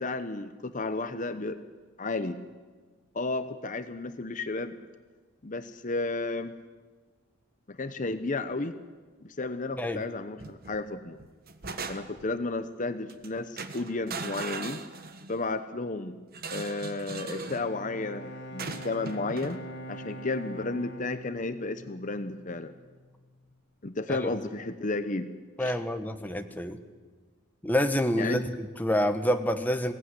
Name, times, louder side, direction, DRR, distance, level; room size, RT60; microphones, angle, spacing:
voice 1, 0.0-1.6 2.0-2.4 3.1-4.8 5.4-6.5 7.7-8.8 9.2-11.2 11.9-14.8 15.3-16.2 16.5-19.6 19.9-22.7 23.8-25.3 25.6-25.8 28.2-28.4, left 3 dB, 35° left, 10 dB, 0.9 m, -33 dB
sound 1, 10.4-10.8 11.2-12.3 13.1-13.3 13.6-15.4 16.3-17.7 18.6-19.6, right 4 dB, 45° right, 1.4 m, -39 dB
Bowed string instrument, 17.3-22.8, right 1 dB, 55° left, 1.8 m, -43 dB
voice 2, 25.6-26.8 27.6-29.9, equal, 10° left, 6 dB, 1.1 m, -27 dB
21.5 x 17.5 x 9.8 m, 1.4 s
head